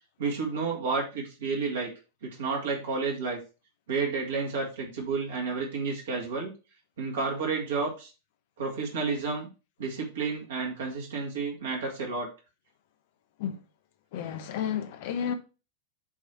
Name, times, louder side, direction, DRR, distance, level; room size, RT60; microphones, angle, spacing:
voice 1, 0.2-1.9 2.2-3.4 3.9-6.5 7.0-8.1 8.6-9.5 9.8-12.3, right 4 dB, 65° right, 1.9 m, -31 dB
voice 2, 14.1-15.3, left 8 dB, 50° left, 0.9 m, -31 dB
8.2 x 3.2 x 4.6 m
figure-of-eight pair, 90°, 0 cm